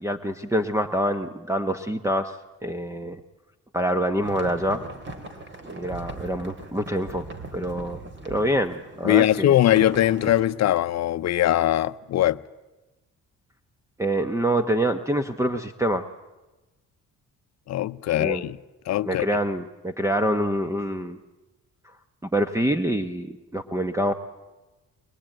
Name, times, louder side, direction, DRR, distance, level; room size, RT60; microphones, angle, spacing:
voice 1, 0.0-2.3 2.6-3.2 3.7-4.8 5.7-7.3 7.5-8.0 8.3-9.6 14.0-16.1 18.2-18.4 19.0-21.2 22.3-24.1, right 1 dB, 10° right, 1.1 m, -26 dB
sound 1, 4.2-9.1 9.6-10.4, right 2 dB, 40° right, 3.4 m, -39 dB
voice 2, 9.0-12.4 17.7-18.6 18.9-19.2, left 13 dB, 60° left, 0.7 m, -21 dB
22.0 x 21.5 x 9.0 m
cardioid pair, 90°, 30 cm